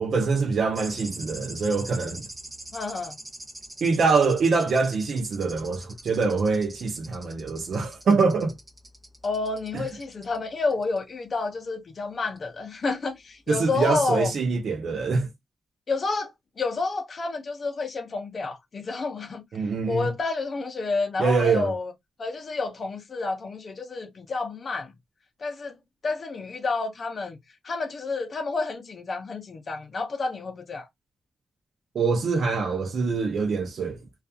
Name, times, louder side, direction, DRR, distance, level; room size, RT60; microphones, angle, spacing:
voice 1, 0.0-2.3 3.8-8.5 9.7-9.8 13.5-15.3 19.5-20.1 21.2-21.7 31.9-34.0, right 4 dB, 60° right, 0.5 m, -24 dB
sound 1, 0.7-10.4 10.7-11.0 12.4-12.5, right 1 dB, 25° right, 0.8 m, -44 dB
voice 2, 2.7-3.2 9.2-14.3 15.9-19.4 19.9-21.9 22.2-24.9 25.4-25.8 26.0-27.4 27.6-30.9, left 3 dB, 40° left, 0.5 m, -29 dB
2.6 x 2.3 x 2.3 m
wide cardioid pair, 155°, 0 cm